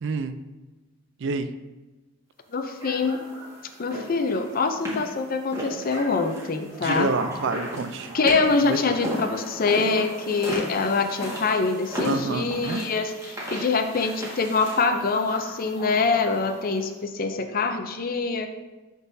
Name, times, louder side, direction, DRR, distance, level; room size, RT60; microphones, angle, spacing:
voice 1, 0.0-0.4 1.2-1.5 6.8-8.1 8.7-8.8 12.0-12.8, right 4 dB, 60° right, 11 dB, 0.4 m, -28 dB
voice 2, 2.5-3.2 3.8-7.1 8.1-18.6, left 4 dB, 45° left, 7 dB, 0.5 m, -24 dB
sound 1, 2.8-16.9, equal, 15° right, 1.7 m, -36 dB
11.0 x 3.9 x 2.7 m, 1.2 s
head